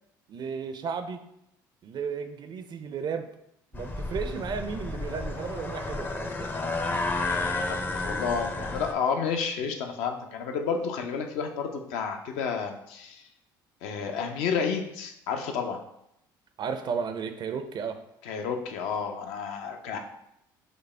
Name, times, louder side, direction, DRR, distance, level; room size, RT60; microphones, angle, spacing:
voice 1, 0.3-1.2 1.8-3.3 3.7-6.5 16.6-18.0, right 6 dB, 40° right, 9 dB, 0.4 m, -34 dB
sound 1, 3.7-8.9, left 2 dB, 20° left, 0.5 m, -31 dB
voice 2, 7.2-13.2 13.8-15.8 18.2-20.0, left 6 dB, 70° left, 4 dB, 0.5 m, -31 dB
5.1 x 2.0 x 3.2 m, 0.79 s
hypercardioid pair, 65°, 11 cm